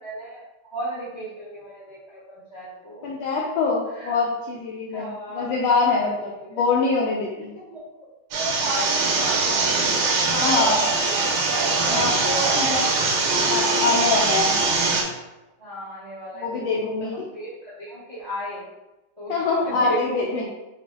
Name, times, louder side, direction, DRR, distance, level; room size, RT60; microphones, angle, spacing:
voice 1, 0.0-3.1 3.9-4.1 4.9-5.6 6.0-6.6 7.7-7.8 8.3-11.1 11.5-13.4 15.6-16.6 17.0-18.6 19.2-20.4, right 1 dB, 45° right, -9 dB, 0.3 m, -34 dB
voice 2, 3.0-7.5 10.3-10.8 11.9-12.1 12.6-12.8 13.4-14.5 16.4-17.3 19.3-20.4, left 4 dB, 80° left, -3 dB, 1.4 m, -24 dB
sound 1, 8.3-15.0, right 3 dB, 70° right, 1.9 m, -22 dB
5.4 x 2.3 x 3.6 m, 1.0 s
omnidirectional pair, 3.4 m